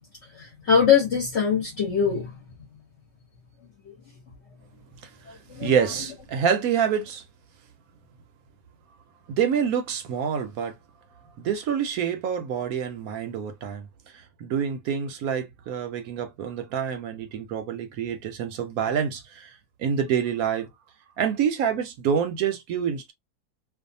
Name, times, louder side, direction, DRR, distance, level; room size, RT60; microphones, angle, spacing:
voice 1, 0.3-2.3 5.5-5.7, left 7 dB, 55° left, 0.9 m, -22 dB
voice 2, 5.0-7.2 9.3-10.8 11.4-13.9 14.1-20.7 21.2-23.1, right 7 dB, 70° right, 0.9 m, -27 dB
2.5 x 2.3 x 2.6 m
omnidirectional pair, 1.7 m